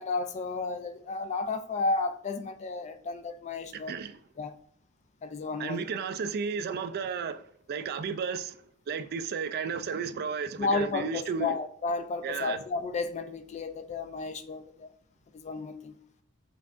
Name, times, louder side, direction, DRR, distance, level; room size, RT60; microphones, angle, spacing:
voice 1, 0.0-4.0 4.4-4.6 5.2-5.8 10.6-14.9 15.3-16.0, left 3 dB, 30° left, 0.3 m, -32 dB
voice 2, 3.7-4.2 5.6-7.4 7.7-8.6 8.9-11.6 12.2-12.6, right 6 dB, 45° right, 0.3 m, -33 dB
5.6 x 3.6 x 2.4 m
head